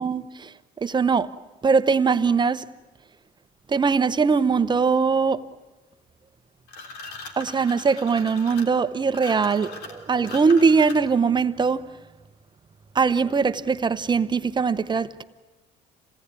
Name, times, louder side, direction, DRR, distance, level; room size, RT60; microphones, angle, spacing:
voice 1, 0.0-1.3 1.6-2.7 3.7-5.5 7.4-11.9 12.9-15.2, right 5 dB, 25° right, 0.9 m, -21 dB
sound 1, 6.7-11.3, left 3 dB, 85° left, 3.5 m, -40 dB
27.5 x 18.0 x 9.7 m
cardioid pair, 110°, 17 cm